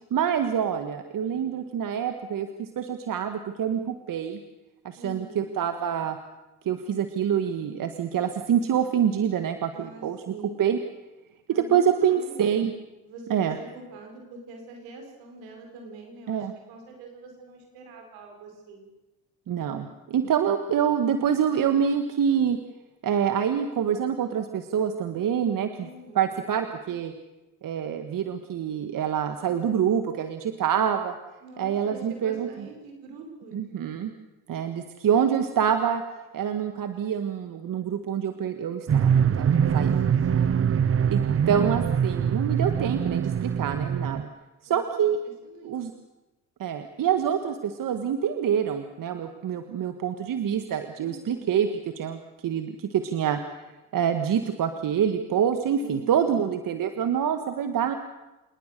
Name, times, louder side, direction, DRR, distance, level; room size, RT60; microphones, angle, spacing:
voice 1, 0.1-4.4 4.9-6.2 6.7-10.8 11.5-12.7 13.3-13.6 16.3-16.5 19.5-22.6 23.0-25.9 26.2-27.1 27.6-31.1 31.6-32.5 33.5-34.1 34.5-36.0 36.3-40.0 41.1-44.3 44.6-45.2 45.6-45.9 46.6-51.7 52.0-53.6 53.9-57.9, right 8 dB, 60° right, 8 dB, 1.7 m, -26 dB
voice 2, 5.0-5.5 9.7-10.6 11.5-12.6 13.0-18.9 25.8-26.3 31.4-33.6 39.5-41.0 44.7-45.1 45.4-45.7 51.0-51.5 55.8-56.5, right 2 dB, 85° right, 3 dB, 5.4 m, -45 dB
sound 1, 38.9-44.2, right 7 dB, 35° right, 0.8 m, -23 dB
27.5 x 20.0 x 6.8 m, 1.0 s
supercardioid pair, 55°, 36 cm